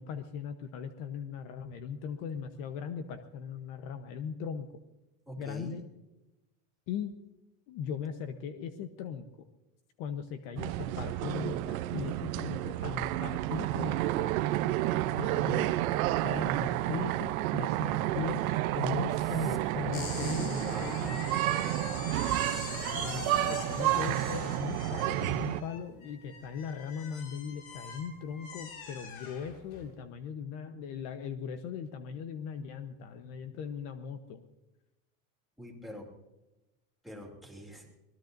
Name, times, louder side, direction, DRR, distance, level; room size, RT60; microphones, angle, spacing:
voice 1, 0.0-4.8 5.4-5.8 6.9-7.1 7.7-9.3 10.0-14.4 15.2-15.8 16.2-18.5 18.8-20.9 23.0-23.1 23.4-34.4, left 7 dB, 50° left, 8 dB, 1.1 m, -39 dB
voice 2, 5.3-5.8 19.2-19.6 20.6-21.4 22.9-24.3 35.6-36.1 37.0-37.9, equal, ahead, 0 dB, 2.9 m, -44 dB
sound 1, 10.6-25.6, right 15 dB, 80° right, 0.8 m, -30 dB
sound 2, 19.9-29.9, left 4 dB, 75° left, 5.6 m, -43 dB
25.0 x 19.0 x 2.7 m, 1.0 s
supercardioid pair, 145°, 42 cm